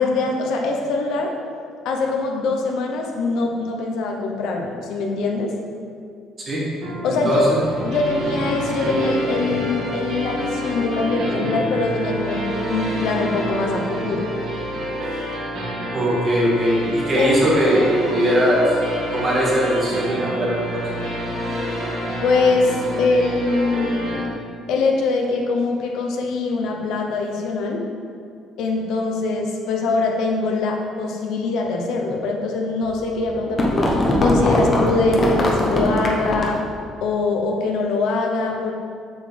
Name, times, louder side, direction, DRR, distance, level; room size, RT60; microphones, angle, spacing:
voice 1, 0.0-1.3 1.8-5.5 7.0-14.3 17.2-17.3 22.2-24.3 24.7-27.8 28.6-36.6 37.0-38.7, left 3 dB, 65° left, 1 dB, 0.8 m, -23 dB
sound 1, 6.8-24.3, equal, 50° right, 1.8 m, -28 dB
voice 2, 7.1-7.6 15.9-18.8 19.1-20.8, equal, 25° right, -5 dB, 1.8 m, -20 dB
sound 2, 7.6-10.6 11.0-12.0, right 2 dB, 80° right, 1.2 m, -30 dB
sound 3, 32.9-36.7, left 1 dB, 25° left, 0.8 m, -20 dB
7.5 x 7.2 x 3.4 m, 2.3 s
cardioid pair, 180°, 0 cm